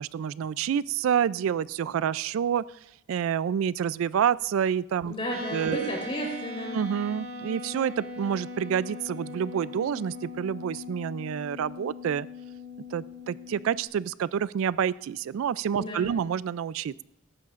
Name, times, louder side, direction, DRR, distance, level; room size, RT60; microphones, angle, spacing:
voice 1, 0.0-2.6 3.1-5.1 5.5-5.9 6.7-12.3 12.9-17.0, right 8 dB, 80° right, 19 dB, 0.3 m, -28 dB
voice 2, 5.0-6.8 15.8-16.1, equal, 30° left, 0 dB, 4.1 m, -33 dB
sound 1, 5.3-13.8, left 3 dB, 50° right, 2.7 m, -40 dB
17.5 x 14.0 x 2.5 m, 0.83 s
head